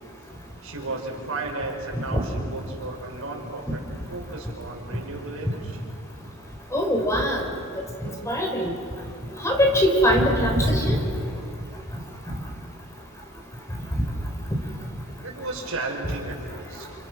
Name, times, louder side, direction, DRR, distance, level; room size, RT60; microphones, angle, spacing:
voice 1, 0.6-3.8 4.1-5.9 15.2-16.9, right 2 dB, 75° right, 0 dB, 5.7 m, -34 dB
voice 2, 6.7-7.4 7.8-8.7 9.4-11.0, equal, 15° left, 2 dB, 4.0 m, -22 dB
30.0 x 29.5 x 6.3 m, 2.7 s
head